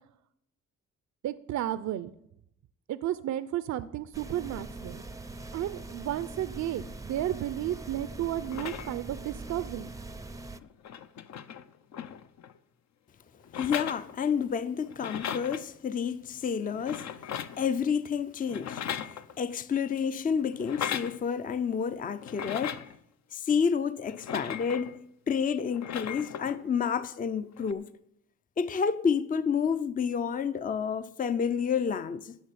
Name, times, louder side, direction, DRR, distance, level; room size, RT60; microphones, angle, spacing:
voice 1, 1.2-2.1 2.9-5.0 5.5-9.9, right 12 dB, 65° right, 0.6 m, -33 dB
sound 1, 4.1-10.6, right 2 dB, 10° right, 0.6 m, -42 dB
sound 2, 8.4-9.1 10.3-10.4 10.6-12.6 13.4-14.5 14.8-15.6 16.7-17.7 18.5-19.6 20.5-21.2 22.2-23.0 24.1-25.0 25.7-26.6 27.6-27.7, left 9 dB, 65° left, 0.8 m, -37 dB
voice 2, 13.5-17.1 17.6-22.8 23.3-24.9 25.3-27.9 28.6-32.4, left 6 dB, 30° left, 0.5 m, -29 dB
11.0 x 6.6 x 9.1 m
cardioid pair, 90°, 30 cm